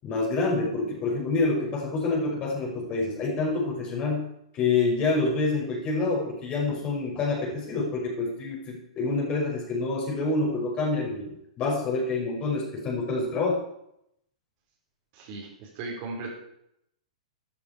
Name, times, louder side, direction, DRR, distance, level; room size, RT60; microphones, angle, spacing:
voice 1, 0.0-4.3 4.5-13.6, left 3 dB, 30° left, -1 dB, 5.5 m, -27 dB
voice 2, 15.1-16.3, right 3 dB, 40° right, -2 dB, 3.8 m, -37 dB
13.0 x 11.0 x 4.9 m, 0.75 s
figure-of-eight pair, 110°, 4 cm